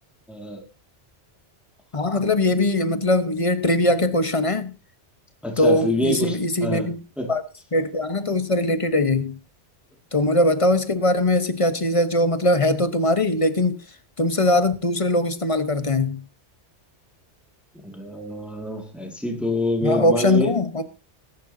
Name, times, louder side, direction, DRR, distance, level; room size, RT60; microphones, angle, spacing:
voice 1, 0.3-0.6 5.4-6.9 7.2-7.3 17.8-20.5, left 1 dB, ahead, 2.0 m, -26 dB
voice 2, 1.9-4.7 5.6-7.0 7.3-7.4 7.7-9.3 10.1-13.8 14.2-16.2 19.8-20.8, left 1 dB, 30° left, 1.0 m, -21 dB
20.0 x 11.0 x 2.7 m
omnidirectional pair, 1.2 m